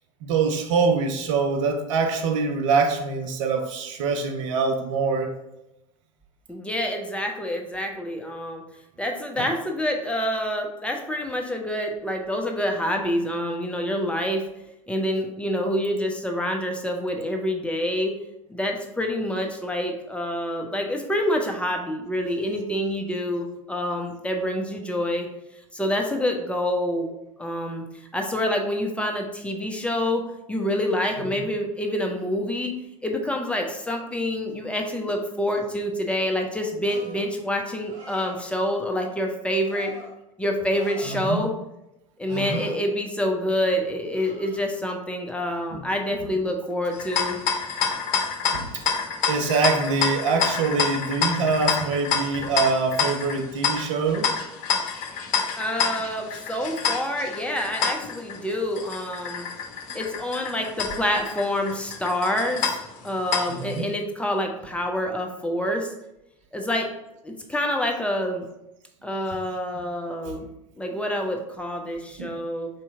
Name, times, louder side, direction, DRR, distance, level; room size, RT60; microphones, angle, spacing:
voice 1, 0.2-5.3 9.4-9.5 31.3-31.4 41.1-41.4 42.3-42.6 45.7-45.8 48.5-48.8 49.3-54.3 63.5-63.9 70.2-70.3 72.2-72.4, right 4 dB, 65° right, 5 dB, 0.6 m, -24 dB
voice 2, 6.5-8.6 9.0-14.5 14.9-18.1 18.5-25.3 25.7-27.1 27.4-27.8 28.1-30.2 30.5-32.7 33.0-39.9 40.4-41.5 42.2-47.4 55.6-59.5 59.9-62.8 63.0-65.9 66.5-66.9 67.2-68.5 69.0-70.4 70.8-72.7, left 1 dB, 5° left, 2 dB, 0.7 m, -27 dB
sound 1, 36.8-37.3 37.8-38.5 39.6-40.1 40.7-41.5 42.2-42.7 44.1-44.6, right 2 dB, 45° right, 1.3 m, -44 dB
sound 2, 46.9-63.8, left 6 dB, 50° left, 0.8 m, -28 dB
4.3 x 3.0 x 3.6 m, 0.87 s
hypercardioid pair, 75°, 17 cm